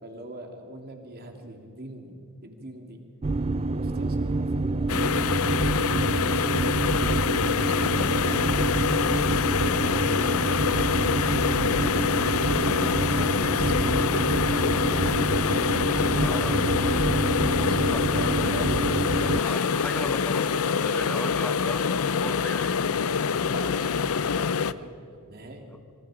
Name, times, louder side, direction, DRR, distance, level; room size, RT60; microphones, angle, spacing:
voice 1, 0.0-2.1 2.4-3.0 3.6-7.4 7.6-8.7 9.6-10.6 11.2-16.8 17.2-18.8 23.4-24.9 25.3-25.7, right 1 dB, 45° right, 3 dB, 2.9 m, -42 dB
sound 1, 3.2-19.4, right 3 dB, 25° right, 0.4 m, -27 dB
sound 2, 4.9-24.7, left 6 dB, 70° left, 0.6 m, -25 dB
voice 2, 16.2-16.6 17.9-18.0 19.2-22.7, left 1 dB, 5° left, 6 dB, 1.3 m, -36 dB
26.0 x 26.0 x 5.1 m, 2.7 s
head